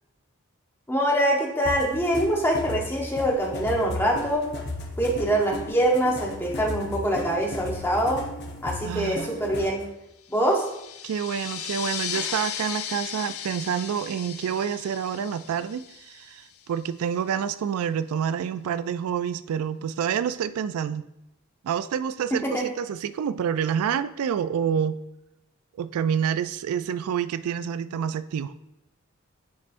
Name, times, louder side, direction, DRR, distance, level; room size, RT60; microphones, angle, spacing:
voice 1, 0.9-4.5 5.0-8.2 8.6-9.8 10.3-10.7 22.3-22.7, right 1 dB, 10° left, -1 dB, 0.9 m, -24 dB
sound 1, 1.7-9.8, left 1 dB, 50° left, 0.8 m, -35 dB
voice 2, 8.8-9.3 11.0-21.1 21.6-25.0 25.8-28.5, right 8 dB, 90° right, 14 dB, 0.3 m, -28 dB
sound 2, 10.3-16.6, left 8 dB, 75° left, 0.5 m, -36 dB
9.5 x 4.2 x 2.5 m, 0.89 s
head